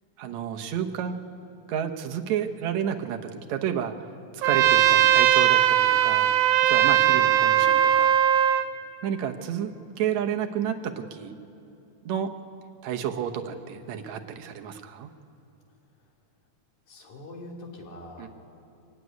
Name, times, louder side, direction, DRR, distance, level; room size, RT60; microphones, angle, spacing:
voice 1, 0.2-1.2 1.7-3.9 4.4-6.4 6.7-8.1 9.0-11.3 12.1-12.3 12.8-15.1 18.2-18.3, right 9 dB, 65° right, 5 dB, 2.1 m, -31 dB
Trumpet, 4.4-8.7, right 11 dB, 85° right, 1.3 m, -19 dB
voice 2, 16.9-18.3, left 1 dB, 65° left, 0 dB, 4.0 m, -43 dB
24.0 x 14.5 x 9.6 m, 3.0 s
omnidirectional pair, 3.8 m